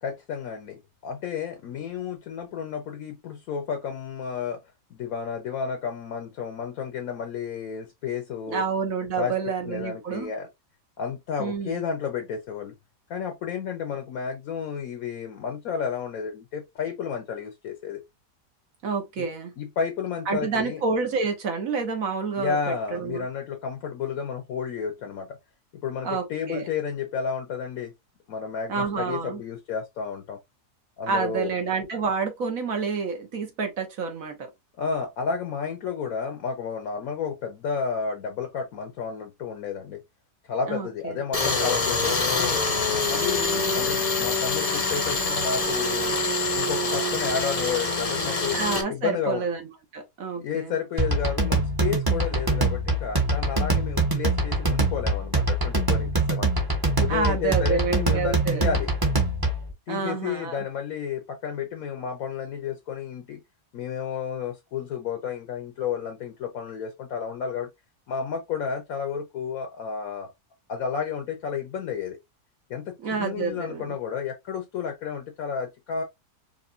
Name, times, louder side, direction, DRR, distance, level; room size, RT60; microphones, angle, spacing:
voice 1, 0.0-4.6 4.9-8.6 9.2-9.3 9.7-10.5 11.0-12.7 13.1-18.0 19.2-19.3 19.6-20.8 22.4-25.4 25.8-27.9 28.3-30.4 31.0-31.5 34.8-40.0 40.5-42.7 43.1-46.2 46.5-48.6 48.9-49.4 50.4-56.5 57.0-58.9 59.9-63.4 63.7-67.7 68.1-70.3 70.7-72.2 72.7-76.0, left 6 dB, 65° left, 1.1 m, -31 dB
voice 2, 8.5-10.3 11.4-11.8 18.8-19.5 20.3-23.3 26.0-26.7 28.7-29.4 31.1-34.5 40.7-40.9 41.1-41.2 43.5-43.8 48.5-50.8 57.1-58.7 59.9-60.6 73.0-74.0, right 5 dB, 60° right, 1.4 m, -29 dB
Tools, 41.3-48.8, left 3 dB, 30° left, 0.7 m, -25 dB
sound 1, 51.0-59.7, right 2 dB, 15° right, 1.0 m, -24 dB
4.9 x 2.6 x 2.5 m
omnidirectional pair, 1.7 m